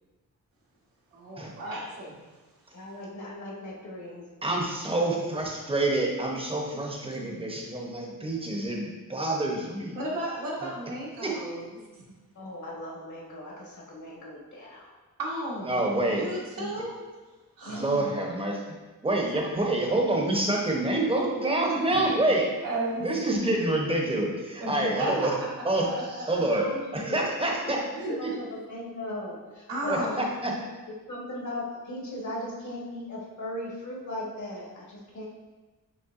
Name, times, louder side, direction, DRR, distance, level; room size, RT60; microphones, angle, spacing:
voice 1, 1.1-2.1 9.9-12.0 15.2-15.8 16.1-16.9 17.6-17.9 20.6-20.7 21.7-23.0 23.3-23.4 24.6-25.1 25.7-26.4 27.6-28.5 29.7-30.2, right 1 dB, 80° right, -5 dB, 1.3 m, -34 dB
voice 2, 2.7-4.2 5.1-5.3 12.3-14.9 17.6-18.2 22.9-23.2 26.6-27.4 28.2-35.3, left 1 dB, 55° left, -3 dB, 1.3 m, -38 dB
voice 3, 4.4-10.0 10.6-10.7 11.2-11.3 15.6-16.2 16.6-16.7 17.8-18.8 19.0-22.4 23.0-25.3 25.7-25.8 26.3-26.6 26.9-27.8 29.9-30.0 30.4-30.5, right 2 dB, 15° right, 0 dB, 0.7 m, -27 dB
5.4 x 3.4 x 2.5 m, 1.2 s
wide cardioid pair, 110°, 34 cm